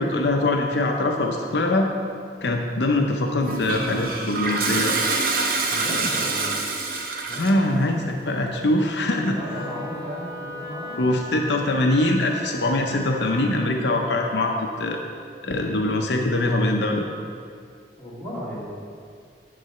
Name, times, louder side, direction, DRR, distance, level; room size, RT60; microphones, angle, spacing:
voice 1, 0.0-1.9 2.4-5.2 7.4-9.4 11.0-15.0 15.4-17.0, left 2 dB, 75° left, 2 dB, 0.7 m, -23 dB
Toilet flush, 3.4-7.7, right 3 dB, 55° right, 0.9 m, -26 dB
voice 2, 5.7-6.5 7.3-7.6 7.9-8.0 9.2-11.0 18.0-18.7, equal, 10° left, -8 dB, 2.0 m, -34 dB
Wind instrument woodwind instrument, 9.4-13.6, right 1 dB, 15° right, 1.1 m, -37 dB
9.5 x 4.0 x 6.7 m, 2.2 s
head